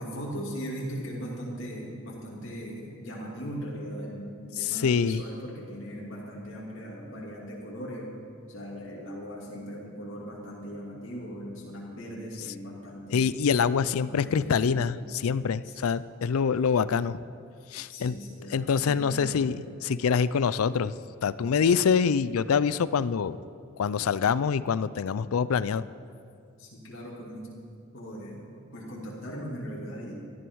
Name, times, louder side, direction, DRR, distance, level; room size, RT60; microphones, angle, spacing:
voice 1, 0.0-8.2 8.5-13.4 14.1-14.8 15.6-15.7 17.9-19.7 26.6-27.5 27.9-30.2, equal, 60° left, -4 dB, 2.7 m, -39 dB
voice 2, 4.6-5.2 13.1-17.2 17.7-18.2 18.5-20.9 21.2-23.4 23.8-25.8, left 6 dB, 85° left, 17 dB, 0.4 m, -25 dB
17.0 x 12.5 x 4.7 m, 2.4 s
head